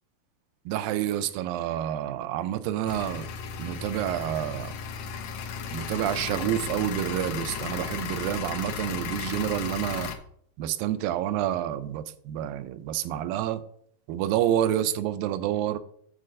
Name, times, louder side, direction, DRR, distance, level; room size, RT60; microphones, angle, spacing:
voice 1, 0.7-3.3 3.6-4.7 5.7-10.1 10.6-13.6 14.1-15.8, right 11 dB, 85° right, 12 dB, 2.3 m, -28 dB
sound 1, 2.9-10.1, left 6 dB, 75° left, 1.7 m, -35 dB
7.7 x 4.5 x 6.2 m, 0.66 s
omnidirectional pair, 4.1 m